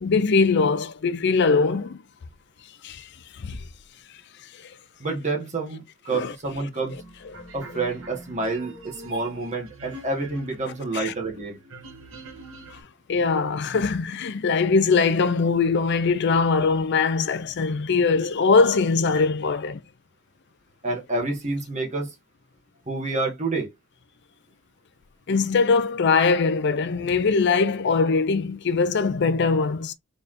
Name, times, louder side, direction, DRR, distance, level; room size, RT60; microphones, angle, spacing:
voice 1, 0.0-2.0 2.8-3.1 3.4-3.6 4.6-4.7 6.1-6.3 7.3-7.4 10.9-11.1 12.7-12.8 13.1-19.8 25.3-29.9, left 4 dB, 50° left, 0.4 m, -21 dB
voice 2, 5.0-6.9 7.5-11.6 20.8-22.1 22.9-23.7, right 3 dB, 30° right, 1.4 m, -28 dB
sound 1, 6.9-12.8, right 1 dB, 60° right, 1.5 m, -42 dB
4.1 x 3.4 x 2.5 m
head